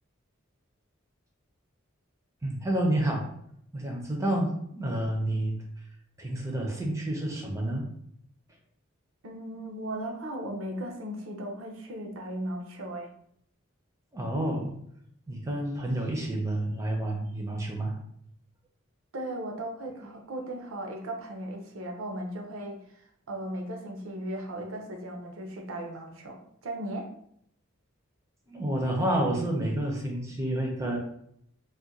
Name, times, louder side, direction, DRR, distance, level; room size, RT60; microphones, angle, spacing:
voice 1, 2.4-3.3 3.7-5.6 6.2-7.9 14.1-14.7 15.3-18.0 20.0-20.1 28.5-31.0, right 1 dB, 15° right, 0 dB, 0.5 m, -29 dB
voice 2, 9.2-13.1 19.1-22.8 23.3-27.1, right 1 dB, 75° right, 3 dB, 0.6 m, -37 dB
2.4 x 2.1 x 3.9 m, 0.71 s
head